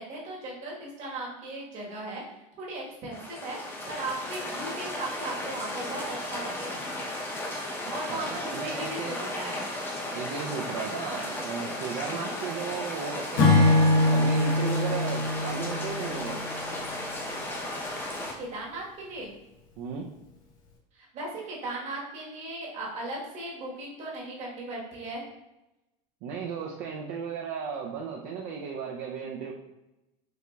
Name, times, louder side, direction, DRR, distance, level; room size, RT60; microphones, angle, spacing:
voice 1, 0.0-2.2 2.6-3.6 3.9-6.9 7.9-9.7 12.0-12.3 18.4-19.3 20.9-25.2, right 2 dB, 40° right, -3 dB, 1.2 m, -37 dB
sound 1, 3.1-18.3, left 1 dB, 10° left, 0.6 m, -35 dB
voice 2, 7.8-9.2 10.1-16.5 19.8-20.0 26.2-29.5, right 6 dB, 60° right, -1 dB, 0.5 m, -35 dB
Acoustic guitar / Strum, 13.4-16.8, left 2 dB, 90° left, 1.0 m, -23 dB
4.7 x 2.6 x 2.2 m, 0.97 s
supercardioid pair, 135°, 17 cm